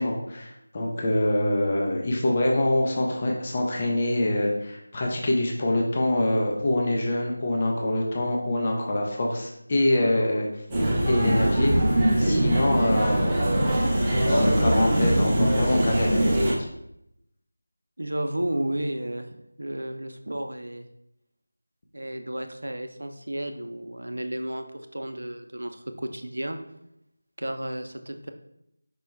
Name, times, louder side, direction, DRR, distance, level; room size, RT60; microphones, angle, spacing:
voice 1, 0.0-10.5 11.0-11.8 12.2-13.9 14.3-16.7, left 1 dB, 30° left, 0 dB, 0.7 m, -25 dB
sound 1, 10.7-16.5, right 1 dB, 15° right, 0.8 m, -22 dB
voice 2, 18.0-20.9 21.9-24.7 24.9-26.6 27.4-28.3, right 1 dB, 80° right, 7 dB, 0.6 m, -32 dB
5.2 x 2.2 x 4.5 m, 0.79 s
figure-of-eight pair, 170°, 0 cm